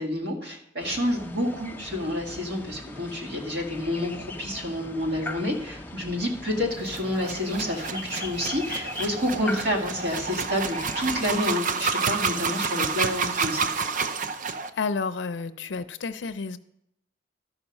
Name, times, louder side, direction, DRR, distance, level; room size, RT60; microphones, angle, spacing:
voice 1, 0.0-13.7, left 1 dB, 60° right, 1 dB, 2.0 m, -29 dB
sound 1, 0.8-11.4, left 2 dB, 10° left, 0.5 m, -39 dB
sound 2, 6.8-14.7, right 5 dB, 45° right, 0.5 m, -29 dB
voice 2, 14.8-16.6, left 4 dB, 70° left, 13 dB, 0.5 m, -30 dB
12.5 x 5.8 x 5.3 m, 0.78 s
head